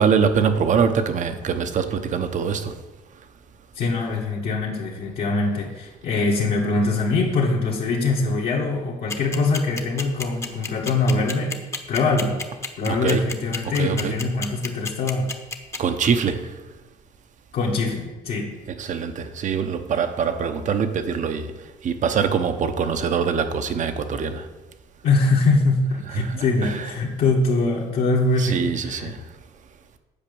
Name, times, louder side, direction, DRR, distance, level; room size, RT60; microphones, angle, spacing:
voice 1, 0.0-2.7 12.9-13.2 13.8-14.1 15.8-16.5 18.8-21.5 21.8-24.4 26.2-26.7 28.4-29.2, right 6 dB, 45° right, 9 dB, 0.9 m, -23 dB
voice 2, 3.7-11.6 11.9-12.4 12.8-15.3 17.5-18.5 25.0-29.1, left 3 dB, 65° left, -3 dB, 1.7 m, -23 dB
sound 1, 9.1-15.8, left 3 dB, 15° left, 0.9 m, -29 dB
8.7 x 5.0 x 7.0 m, 1.2 s
cardioid pair, 110°, 17 cm